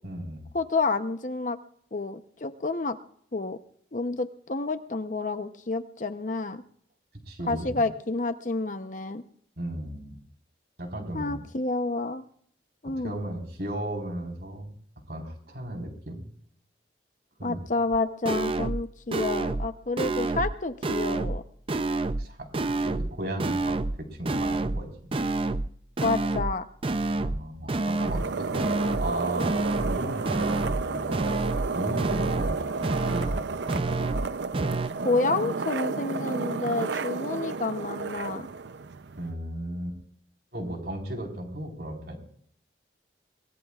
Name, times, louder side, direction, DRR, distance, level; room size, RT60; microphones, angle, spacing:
voice 1, 0.0-0.4 7.3-7.9 9.6-10.2 10.8-11.4 13.0-14.7 15.1-16.3 17.4-17.6 22.2-24.9 27.1-31.5 31.7-32.7 33.0-33.5 33.7-34.1 39.2-40.0 40.5-42.2, right 1 dB, 60° right, 3 dB, 4.4 m, -35 dB
voice 2, 0.5-1.6 1.9-3.0 3.3-3.6 3.9-6.6 7.5-9.2 11.1-12.2 12.8-13.1 17.4-21.4 26.0-26.6 35.0-38.5, left 3 dB, 45° left, 9 dB, 0.8 m, -29 dB
sound 1, 17.9-18.0 18.3-18.8 19.1-19.7 20.0-20.5 20.8-21.4 21.7-22.3 22.5-23.1 23.4-24.0 24.3-24.8 25.1-25.7 26.0-26.5 26.8-27.4 27.7-28.3 28.5-29.1 29.4-30.0 30.3-30.8 31.1-31.7 32.0-32.5 32.8-33.4 33.7-34.3 34.5-34.9, right 2 dB, 30° right, 0.5 m, -28 dB
sound 2, 27.8-39.3, right 4 dB, 80° right, 0.6 m, -32 dB
23.0 x 20.5 x 2.4 m, 0.63 s
head